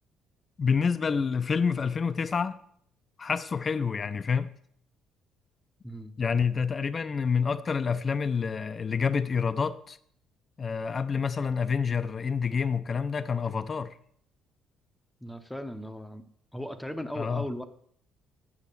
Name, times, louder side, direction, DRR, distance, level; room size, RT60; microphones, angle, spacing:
voice 1, 0.6-2.6 3.2-4.5 6.2-10.0 10.6-14.0 17.1-17.5, left 6 dB, 40° left, 0.5 m, -28 dB
voice 2, 15.2-16.2 16.5-17.6, equal, 5° left, 0.8 m, -37 dB
7.4 x 6.3 x 6.7 m
cardioid pair, 85°, 0 cm